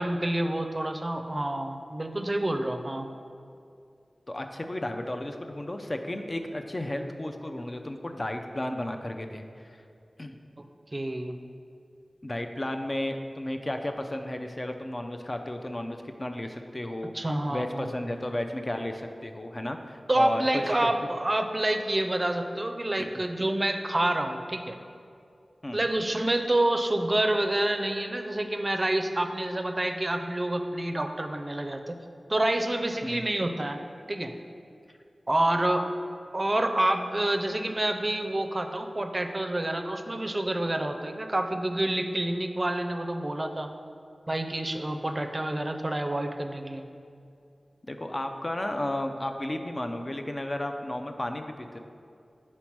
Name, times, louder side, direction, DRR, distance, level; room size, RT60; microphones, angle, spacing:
voice 1, 0.0-3.1 10.9-11.3 17.1-17.9 20.1-24.8 25.7-32.0 32.3-33.8 34.1-34.3 35.3-35.9 36.3-43.7 44.3-46.8, right 1 dB, 35° right, 6 dB, 0.5 m, -28 dB
voice 2, 4.3-9.5 10.2-10.4 12.2-20.9 23.0-23.1 25.6-25.9 33.0-33.3 47.9-51.8, left 1 dB, 35° left, 5 dB, 0.5 m, -33 dB
5.7 x 4.3 x 4.6 m, 2.5 s
cardioid pair, 40°, 0 cm